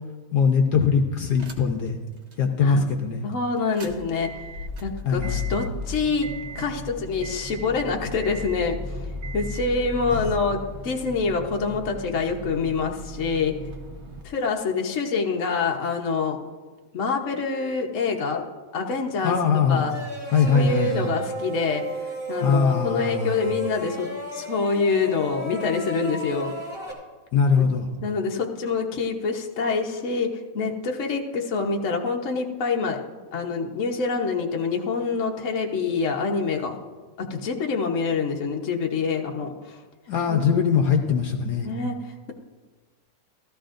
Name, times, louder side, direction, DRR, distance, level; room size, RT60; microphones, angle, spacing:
voice 1, 0.3-2.0 2.4-3.2 5.0-5.4 10.1-10.3 19.2-19.8 20.3-21.1 22.4-23.5 27.3-27.9 40.1-41.7, left 6 dB, 70° left, 4 dB, 1.3 m, -21 dB
sound 1, 1.4-1.9 2.3-2.4 3.6-14.2, left 1 dB, 45° right, 1.1 m, -36 dB
voice 2, 3.2-4.3 4.8-6.3 6.5-8.8 9.3-13.5 14.2-16.4 16.9-19.4 19.7-19.9 20.5-21.8 22.3-24.1 24.3-26.5 27.6-27.7 28.0-33.0 33.3-36.7 37.2-39.5 40.3-40.4 41.6-42.0, left 4 dB, 50° left, 1 dB, 1.2 m, -26 dB
sound 2, 19.9-26.9, right 2 dB, 20° right, 2.6 m, -34 dB
15.5 x 13.0 x 2.5 m, 1.3 s
omnidirectional pair, 1.9 m